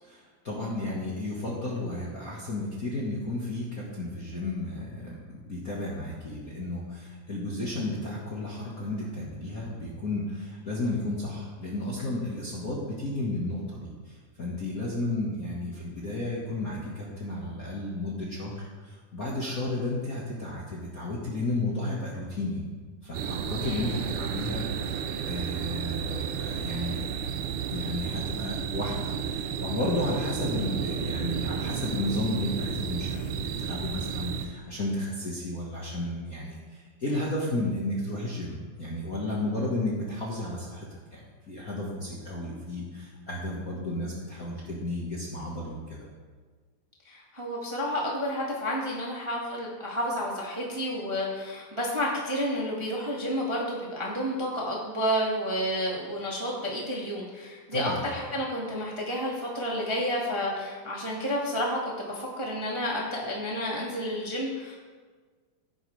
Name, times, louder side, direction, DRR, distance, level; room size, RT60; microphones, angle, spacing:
voice 1, 0.0-22.6 23.0-27.0 27.7-40.9 41.1-46.0 57.7-58.0, left 1 dB, 40° left, -5 dB, 1.4 m, -33 dB
sound 1, 23.1-34.5, right 8 dB, 90° right, 1.2 m, -32 dB
voice 2, 23.6-24.0 47.0-64.7, equal, 15° right, -4 dB, 1.2 m, -30 dB
16.0 x 9.2 x 3.3 m, 1.5 s
omnidirectional pair, 3.4 m